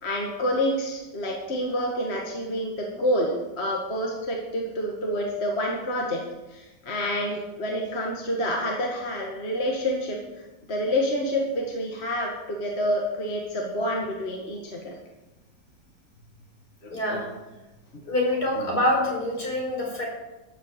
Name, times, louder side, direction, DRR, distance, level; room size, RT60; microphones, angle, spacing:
voice 1, 0.0-10.2 10.7-14.9 16.8-17.2 18.6-18.7, equal, 40° left, -1 dB, 2.0 m, -28 dB
voice 2, 16.9-17.3 18.1-20.1, left 1 dB, 65° left, -2 dB, 5.0 m, -25 dB
13.5 x 7.9 x 8.0 m, 1.0 s
omnidirectional pair, 1.8 m